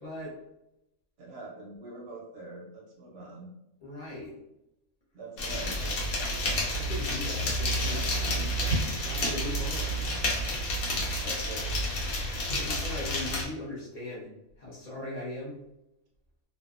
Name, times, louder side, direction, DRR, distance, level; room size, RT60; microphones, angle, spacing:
voice 1, 0.0-0.4 3.8-4.4 6.7-8.5 8.9-10.1 12.6-14.3 14.6-15.6, left 1 dB, 40° left, -6 dB, 0.5 m, -39 dB
voice 2, 1.2-3.5 5.1-6.0 11.2-11.8, right 2 dB, 65° right, -1 dB, 0.7 m, -43 dB
sound 1, 5.4-13.4, equal, 85° left, 1.2 m, -30 dB
2.6 x 2.1 x 2.4 m, 0.87 s
omnidirectional pair, 1.5 m